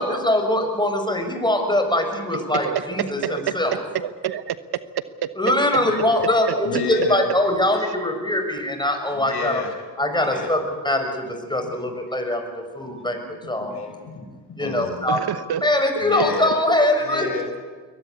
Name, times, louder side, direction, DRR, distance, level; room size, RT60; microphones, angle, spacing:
voice 1, 0.0-3.8 5.4-9.6 10.0-13.9 14.6-15.2 15.6-17.3, left 1 dB, 10° left, 5 dB, 6.3 m, -22 dB
voice 2, 2.5-3.4 3.9-4.6 5.2-5.3 6.0-6.1 6.4-7.1 7.8-7.9 15.1-15.9 16.3-16.6, right 10 dB, 60° right, 14 dB, 1.1 m, -28 dB
voice 3, 6.6-7.2 9.1-9.7 10.2-10.6 11.6-11.7 12.8-13.1 13.4-15.2 16.0-16.5 17.0-17.7, left 5 dB, 60° left, 6 dB, 4.7 m, -31 dB
22.0 x 20.0 x 8.4 m, 1.5 s
hypercardioid pair, 50°, 44 cm